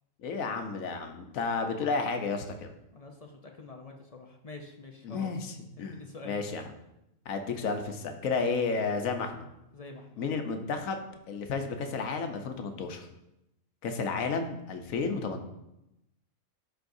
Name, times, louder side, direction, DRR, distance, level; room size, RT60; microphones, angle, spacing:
voice 1, 0.2-2.7 5.0-5.5 5.8-6.6 7.3-9.5 10.2-11.0 11.3-13.1 13.8-15.5, left 4 dB, 85° left, 5 dB, 1.2 m, -32 dB
voice 2, 2.9-5.3 5.8-6.4 9.7-10.3, left 3 dB, 45° left, 2 dB, 0.5 m, -47 dB
12.5 x 4.6 x 2.6 m, 0.88 s
omnidirectional pair, 1.4 m